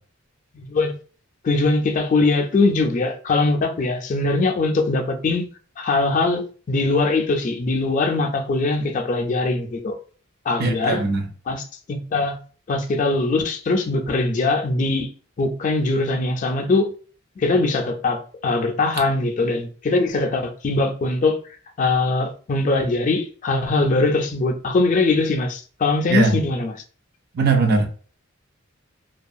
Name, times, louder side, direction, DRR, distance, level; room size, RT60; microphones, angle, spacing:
voice 1, 0.5-1.0 1.4-5.5 5.8-10.0 10.5-11.1 11.5-12.4 12.7-15.1 15.4-16.9 17.4-21.4 21.8-26.7, left 3 dB, 40° left, 0.4 m, -21 dB
voice 2, 10.6-11.3 26.1-26.4 27.3-27.9, right 3 dB, 50° right, 0.5 m, -19 dB
2.3 x 2.3 x 2.6 m
head